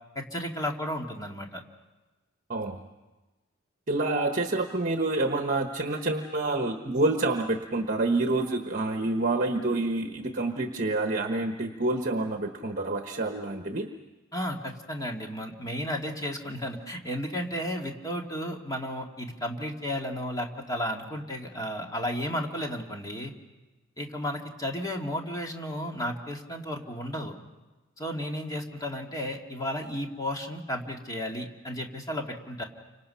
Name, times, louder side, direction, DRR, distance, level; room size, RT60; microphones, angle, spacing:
voice 1, 0.2-1.6 14.3-23.3 24.0-27.3 28.0-32.6, equal, 20° left, 1 dB, 2.3 m, -33 dB
voice 2, 2.5-2.8 3.9-13.9, right 2 dB, 45° right, 4 dB, 1.2 m, -28 dB
30.0 x 26.0 x 5.7 m, 1.2 s
head